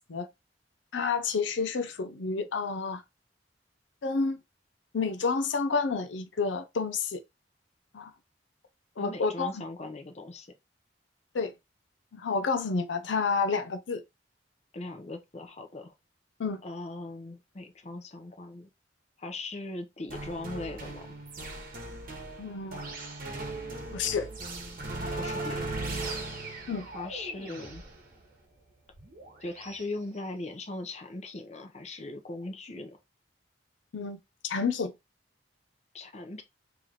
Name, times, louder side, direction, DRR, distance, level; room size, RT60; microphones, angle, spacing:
voice 1, 0.9-3.0 4.0-4.4 4.9-7.2 7.9-8.1 9.0-9.6 11.3-11.5 12.1-14.0 16.4-16.6 22.4-22.8 23.9-24.3 26.7-26.9 33.9-34.9, left 4 dB, 85° left, 0.5 m, -30 dB
voice 2, 9.0-10.5 14.7-15.9 16.6-18.7 19.2-21.1 25.1-26.0 26.9-27.8 29.4-33.0 35.9-36.4, left 2 dB, 40° left, 0.7 m, -39 dB
sound 1, 20.1-29.8, right 2 dB, 50° right, 1.1 m, -38 dB
3.2 x 3.0 x 3.8 m
head